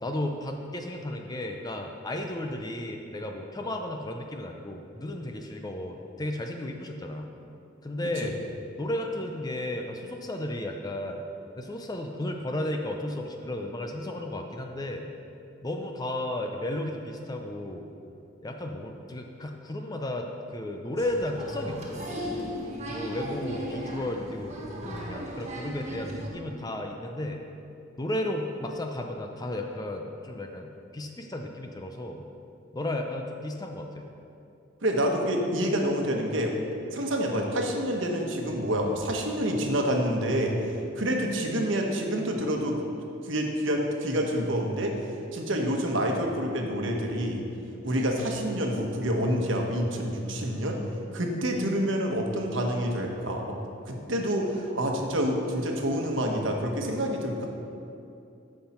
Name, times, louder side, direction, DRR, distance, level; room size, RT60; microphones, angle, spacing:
voice 1, 0.0-7.3 7.8-8.4 8.8-11.3 11.5-15.1 15.6-17.9 18.4-22.1 22.9-27.4 28.0-32.2 32.7-34.1, left 1 dB, 20° left, 3 dB, 0.5 m, -34 dB
Applause, 21.0-26.3, equal, 35° right, 1.4 m, -36 dB
voice 2, 34.8-36.5 36.9-40.5 41.0-42.8 43.2-44.9 45.3-47.4 47.8-50.8 51.1-53.4 53.9-57.5, equal, 70° right, 1 dB, 1.3 m, -27 dB
14.0 x 5.8 x 4.3 m, 2.7 s
head